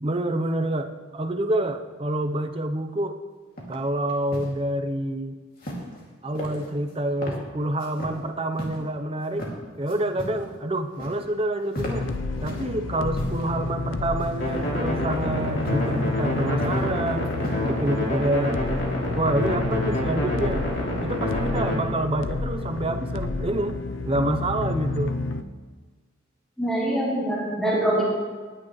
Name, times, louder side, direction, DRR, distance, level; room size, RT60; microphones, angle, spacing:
voice 1, 0.0-3.2 3.7-5.4 6.2-9.5 9.8-12.1 12.4-17.3 17.6-18.6 19.2-20.6 21.0-23.8 24.0-25.1, right 1 dB, 30° right, 7 dB, 0.7 m, -27 dB
sound 1, 3.6-3.8 4.1-4.5 5.6-6.0 6.3-6.9 7.2-7.4 7.8-8.2 8.6-8.8 9.3-9.5 9.9-10.5 10.7-11.3 11.6-12.7 13.1-13.5 14.2-14.6 15.6-15.9 16.3-16.9 17.2-17.7, equal, 50° left, 2.5 m, -35 dB
sound 2, 11.8-25.4, left 3 dB, 85° left, 0.6 m, -30 dB
sound 3, 14.4-21.8, equal, 65° left, 3.2 m, -28 dB
voice 2, 26.6-28.0, right 1 dB, ahead, -7 dB, 3.2 m, -24 dB
19.0 x 10.0 x 3.2 m, 1.5 s
head